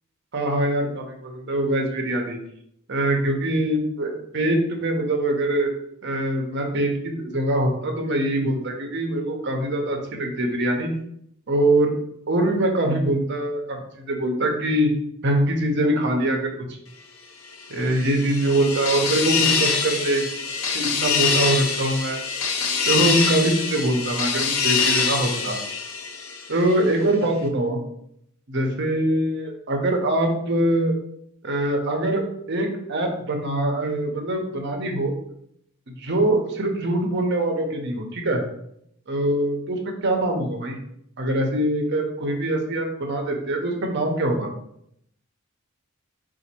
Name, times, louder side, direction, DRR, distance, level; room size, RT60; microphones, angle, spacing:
voice 1, 0.3-2.4 2.9-5.7 6.0-10.9 11.5-12.0 12.3-14.9 15.2-16.5 17.7-20.3 20.7-22.2 22.9-25.6 26.5-27.8 28.5-30.9 31.4-32.2 32.5-35.1 35.9-38.4 39.1-40.8 41.2-44.5, right 1 dB, 55° right, 2 dB, 0.8 m, -23 dB
sound 1, 17.6-26.7, left 5 dB, 75° left, 0.6 m, -25 dB
3.9 x 2.5 x 4.4 m, 0.73 s
head